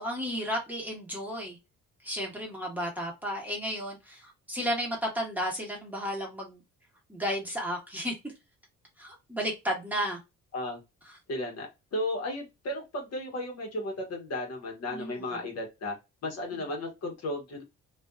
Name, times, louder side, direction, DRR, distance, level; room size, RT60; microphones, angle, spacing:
voice 1, 0.0-1.6 2.0-6.6 7.1-8.3 9.0-10.2 14.9-15.4 16.5-16.6, equal, 5° right, 1.2 m, -33 dB
voice 2, 11.3-15.9 16.2-17.6, left 1 dB, 55° left, 1.2 m, -34 dB
2.5 x 2.5 x 2.2 m
cardioid pair, 90°, 30 cm